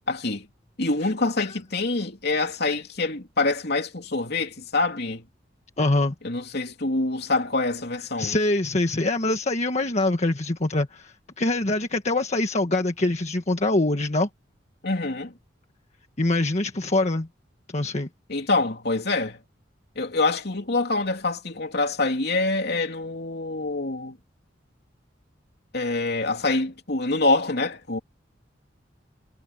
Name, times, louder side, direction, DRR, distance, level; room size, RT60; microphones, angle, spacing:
voice 1, 0.1-0.5 0.8-5.2 6.2-8.4 14.8-15.3 18.3-19.4 19.9-24.2 25.7-28.0, left 3 dB, 60° left, 3.2 m, -25 dB
voice 2, 5.8-6.1 8.2-14.3 16.2-17.3 17.7-18.1, left 2 dB, 40° left, 1.5 m, -24 dB
head